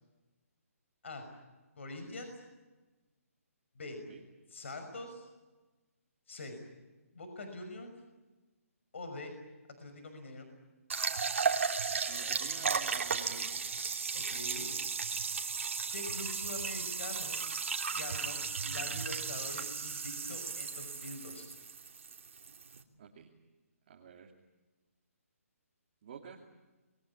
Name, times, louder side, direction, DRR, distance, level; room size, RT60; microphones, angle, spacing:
voice 1, 1.8-2.3 3.8-4.0 4.5-5.3 6.3-6.6 7.1-7.9 8.9-9.3 9.8-10.5 14.1-14.7 15.9-17.4 17.9-21.4, left 2 dB, 55° left, 6 dB, 5.7 m, -44 dB
sound 1, 10.9-22.8, right 5 dB, 55° right, 2.9 m, -35 dB
voice 2, 12.1-13.6 23.0-23.3 23.9-24.3 26.0-26.4, right 6 dB, 30° right, -1 dB, 2.6 m, -49 dB
27.5 x 22.0 x 8.5 m, 1.2 s
hypercardioid pair, 175°, 8 cm